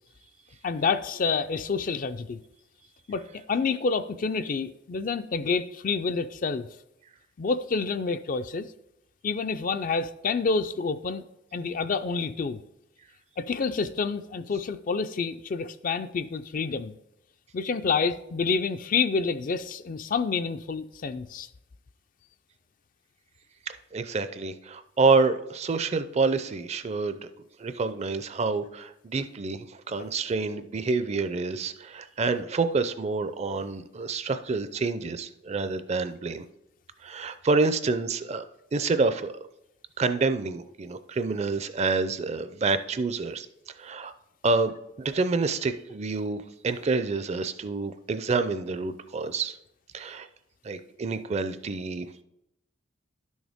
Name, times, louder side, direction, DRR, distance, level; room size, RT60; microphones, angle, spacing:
voice 1, 0.6-2.4 3.1-3.2 3.5-6.7 7.4-8.7 9.2-11.2 11.5-12.6 13.4-16.9 17.5-21.5, left 4 dB, 45° left, 11 dB, 0.4 m, -28 dB
voice 2, 23.7-27.2 27.6-36.4 37.0-38.4 38.7-39.3 40.0-43.5 43.8-44.1 44.4-44.7 45.0-46.4 46.6-49.5 49.9-50.3 50.6-52.1, right 4 dB, 35° right, 11 dB, 0.4 m, -27 dB
11.0 x 6.3 x 3.5 m, 0.84 s
head